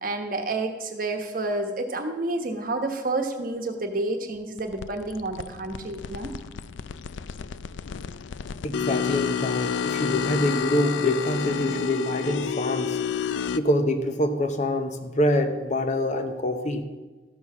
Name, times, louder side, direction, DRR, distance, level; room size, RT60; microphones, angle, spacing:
voice 1, 0.0-6.3, right 2 dB, 45° right, 5 dB, 1.1 m, -29 dB
sound 1, 4.6-13.6, left 7 dB, 70° left, 0.4 m, -30 dB
voice 2, 8.6-13.0 13.5-16.8, left 1 dB, 40° left, 7 dB, 0.8 m, -25 dB
13.0 x 6.3 x 6.2 m, 1.3 s
head